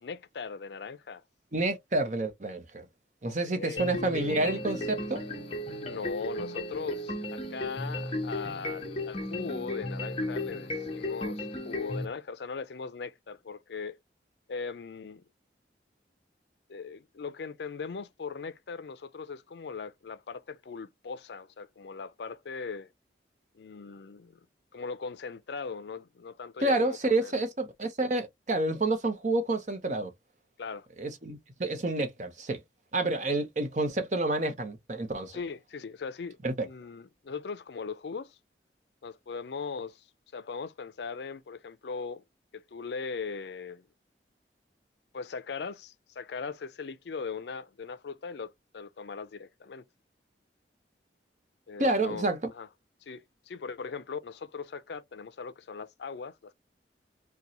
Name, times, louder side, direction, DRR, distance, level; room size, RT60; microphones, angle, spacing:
voice 1, 0.0-1.2 3.5-3.9 5.8-14.0 14.5-15.2 16.7-22.9 23.5-24.4 24.7-27.4 30.6-30.9 35.3-36.4 36.6-38.4 39.0-40.1 40.3-42.2 42.5-43.9 45.1-49.8 51.7-52.7 53.0-56.5, left 5 dB, 70° left, 0.4 m, -39 dB
voice 2, 1.5-2.9 3.2-5.2 26.6-30.1 31.0-32.6 32.9-35.4 36.4-36.7 51.8-52.5, right 2 dB, 40° right, 0.7 m, -29 dB
sound 1, 3.8-12.1, left 1 dB, 30° left, 0.9 m, -35 dB
3.9 x 2.2 x 2.9 m
head